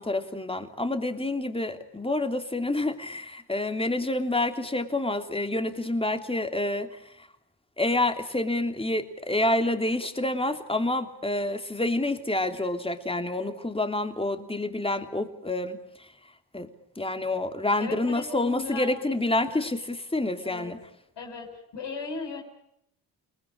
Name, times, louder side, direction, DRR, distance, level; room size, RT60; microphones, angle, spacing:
voice 1, 0.0-7.3 7.8-16.1 16.5-16.7 17.0-20.8, left 2 dB, 15° left, 7 dB, 3.1 m, -28 dB
voice 2, 17.8-19.1 19.5-19.6 20.4-20.7 21.2-22.4, left 4 dB, 85° left, 2 dB, 7.3 m, -37 dB
30.0 x 20.0 x 8.8 m, 0.78 s
cardioid pair, 90°, 41 cm